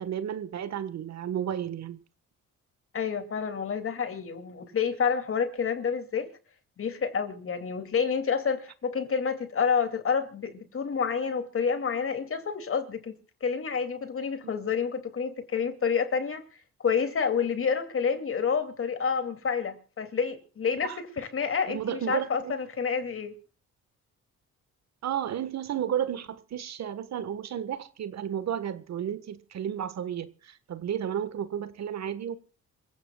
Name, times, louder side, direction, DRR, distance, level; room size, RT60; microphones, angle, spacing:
voice 1, 0.0-2.0 14.4-14.5 20.8-21.0 21.7-22.5 25.0-32.4, right 9 dB, 60° right, 1.5 m, -32 dB
voice 2, 2.9-6.3 6.8-16.4 16.8-23.4, left 6 dB, 45° left, 2.7 m, -29 dB
27.0 x 16.0 x 2.4 m
cardioid pair, 90°, 30 cm